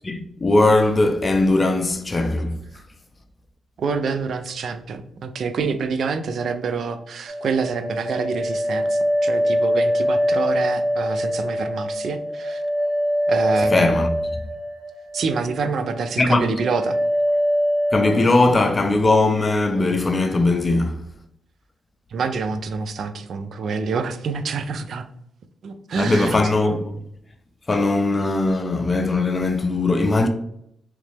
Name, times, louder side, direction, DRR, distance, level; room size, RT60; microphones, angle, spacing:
voice 1, 0.0-2.5 13.7-14.1 16.2-16.5 17.9-21.0 26.0-26.9 27.7-30.3, left 2 dB, 30° left, 0.5 m, -19 dB
voice 2, 3.8-12.6 13.3-14.0 15.1-17.0 22.1-25.1 25.6-26.4, right 5 dB, 70° right, 0.4 m, -27 dB
sound 1, 7.3-15.4 15.7-16.3 16.6-18.3, equal, 50° right, 0.9 m, -23 dB
3.6 x 3.2 x 3.3 m
cardioid pair, 90°, 0 cm